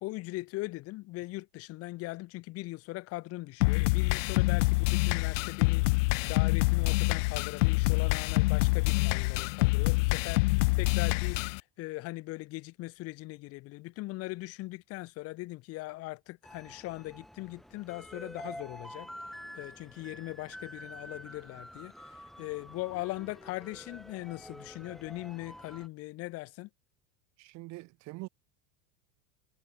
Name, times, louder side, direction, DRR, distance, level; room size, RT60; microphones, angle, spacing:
voice 1, 0.0-19.1 19.5-26.7, left 20 dB, 40° left, 1.2 m, -40 dB
sound 1, 3.6-11.6, left 26 dB, 70° left, 0.5 m, -26 dB
sound 2, 16.4-25.9, equal, ahead, 1.3 m, -48 dB
voice 2, 27.4-28.3, right 22 dB, 45° right, 2.2 m, -43 dB
supercardioid pair, 160°, 38 cm